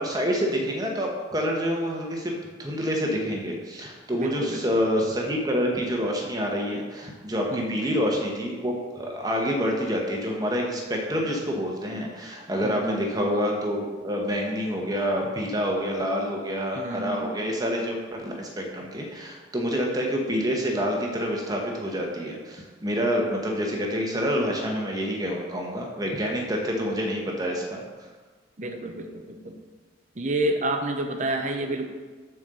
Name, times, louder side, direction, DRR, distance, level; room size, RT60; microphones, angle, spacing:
voice 1, 0.0-27.8, equal, 20° right, 0 dB, 1.1 m, -27 dB
voice 2, 4.1-4.6 7.5-7.8 12.6-13.1 16.8-17.5 28.6-29.6 30.2-31.9, right 1 dB, 35° right, 5 dB, 0.7 m, -29 dB
7.2 x 4.6 x 6.7 m, 1.4 s
head